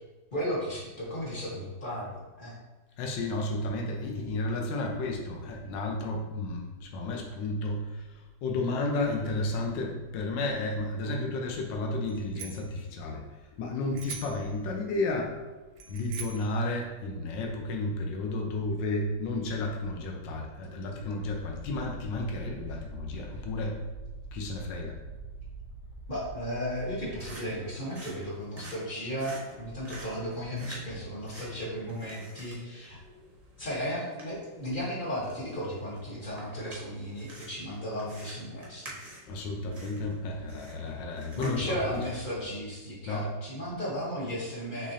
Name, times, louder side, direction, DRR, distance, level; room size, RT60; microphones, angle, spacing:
voice 1, 0.3-2.5 22.3-22.8 26.1-33.0 33.6-38.9 41.3-44.9, equal, 30° left, -6 dB, 1.1 m, -35 dB
voice 2, 3.0-8.0 8.4-13.2 13.6-15.3 15.9-23.8 24.3-24.9 39.3-42.0 43.1-43.3, left 2 dB, 75° left, 1 dB, 1.3 m, -32 dB
Bicycle bell, 12.0-12.8 13.9-14.5 15.8-16.5, right 8 dB, 70° right, 1.1 m, -43 dB
sound 1, 21.2-27.3, right 2 dB, 55° left, 1.4 m, -46 dB
sound 2, 26.8-42.4, right 2 dB, 35° right, 0.6 m, -50 dB
6.1 x 3.1 x 2.7 m, 1.2 s
omnidirectional pair, 2.1 m